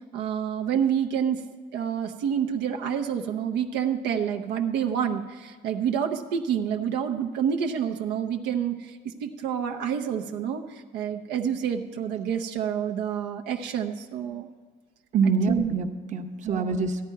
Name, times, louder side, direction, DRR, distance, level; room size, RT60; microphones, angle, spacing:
voice 1, 0.1-1.4 1.7-14.5 15.2-15.7 16.4-16.8, right 8 dB, 85° right, 3 dB, 0.7 m, -28 dB
voice 2, 15.1-17.0, right 4 dB, 45° right, 5 dB, 0.9 m, -25 dB
13.0 x 10.5 x 4.7 m, 1.4 s
cardioid pair, 110°, 17 cm